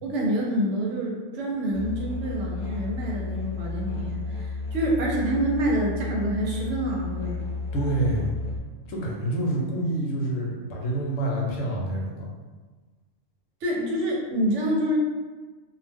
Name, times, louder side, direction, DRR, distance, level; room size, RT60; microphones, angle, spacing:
voice 1, 0.0-7.4 13.6-15.0, right 1 dB, 70° right, -2 dB, 0.9 m, -27 dB
Musical instrument, 1.7-8.6, left 3 dB, 60° left, 0.6 m, -32 dB
voice 2, 7.7-8.3 8.9-12.3, right 1 dB, 80° left, -2 dB, 1.0 m, -27 dB
2.4 x 2.1 x 3.3 m, 1.3 s
omnidirectional pair, 1.3 m